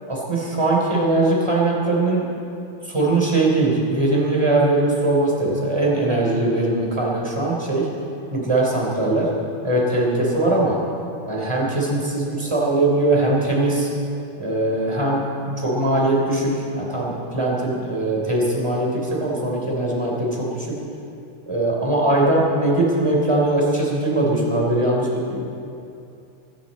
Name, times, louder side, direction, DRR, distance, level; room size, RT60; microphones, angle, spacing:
voice 1, 0.1-2.3 2.9-7.9 8.3-9.3 9.6-10.8 11.2-13.9 14.4-15.2 15.6-20.8 21.5-25.4, right 2 dB, 10° right, -3 dB, 3.3 m, -21 dB
24.0 x 13.0 x 4.3 m, 2.7 s
omnidirectional pair, 3.6 m